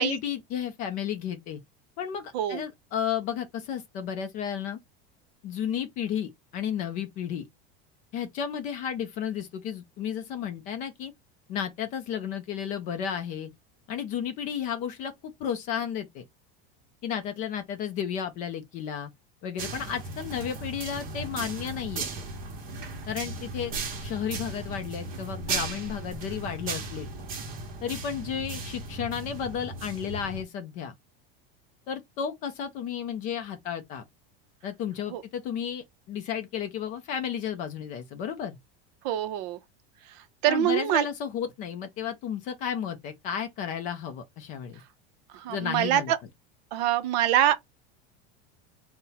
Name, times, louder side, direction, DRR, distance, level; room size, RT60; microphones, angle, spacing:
voice 1, 0.0-1.6 2.0-4.8 5.4-7.4 8.1-11.1 11.5-13.5 13.9-16.2 17.0-19.1 19.4-22.1 23.1-23.7 24.0-27.1 27.8-30.9 31.9-34.0 34.6-38.6 40.5-44.8 45.5-46.1, left 8 dB, 25° left, 0.4 m, -33 dB
sound 1, 19.6-30.4, right 3 dB, 30° right, 0.9 m, -36 dB
voice 2, 39.0-39.6 40.4-41.1 45.3-46.2 46.7-47.6, right 11 dB, 45° right, 0.6 m, -24 dB
4.1 x 2.1 x 3.8 m
cardioid pair, 180°, 30 cm